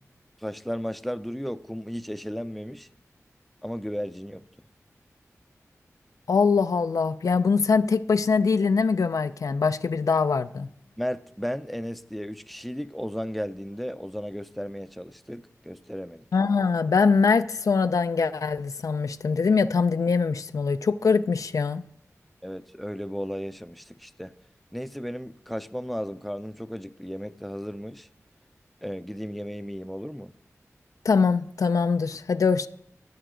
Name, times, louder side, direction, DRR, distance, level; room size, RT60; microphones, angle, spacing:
voice 1, 0.4-2.9 3.6-4.4 11.0-16.3 22.4-24.3 24.7-28.1 28.8-30.3, equal, ahead, 0.5 m, -34 dB
voice 2, 6.3-10.7 16.3-21.8 31.0-32.7, left 5 dB, 80° left, 0.4 m, -23 dB
14.5 x 9.1 x 3.8 m
cardioid pair, 45°, 6 cm